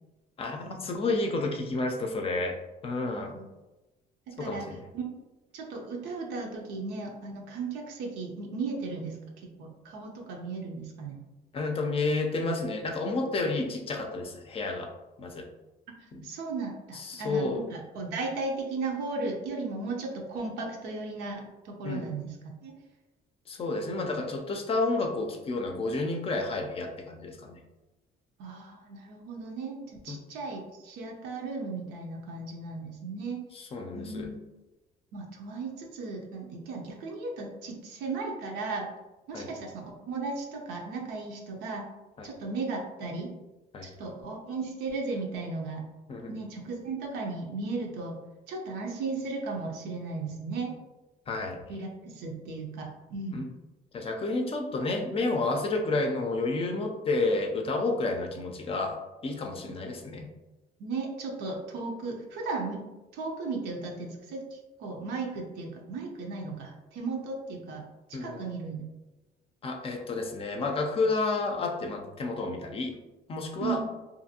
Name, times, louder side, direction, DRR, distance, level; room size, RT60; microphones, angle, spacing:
voice 1, 0.4-2.6 2.8-3.3 4.4-4.8 11.5-14.9 15.2-15.5 16.1-16.3 16.9-17.6 21.8-22.1 23.5-27.6 30.1-30.2 33.5-34.3 39.3-39.5 42.2-42.3 43.7-43.9 46.1-46.4 51.3-51.6 53.3-53.5 53.9-59.0 59.2-60.3 68.1-68.4 69.6-72.9 73.3-73.8, left 3 dB, 35° left, 3 dB, 0.4 m, -30 dB
voice 2, 3.0-3.5 4.4-4.7 4.9-5.1 5.5-9.2 9.6-11.2 16.2-22.4 22.6-22.8 28.4-33.4 33.9-34.4 35.1-38.9 39.3-41.8 42.2-43.3 43.8-45.9 46.3-48.2 48.5-50.8 51.7-53.5 60.8-62.8 63.1-68.8 73.6-73.9, right 3 dB, 90° right, 1 dB, 0.6 m, -36 dB
2.6 x 2.5 x 2.7 m, 1.1 s
cardioid pair, 110°, 17 cm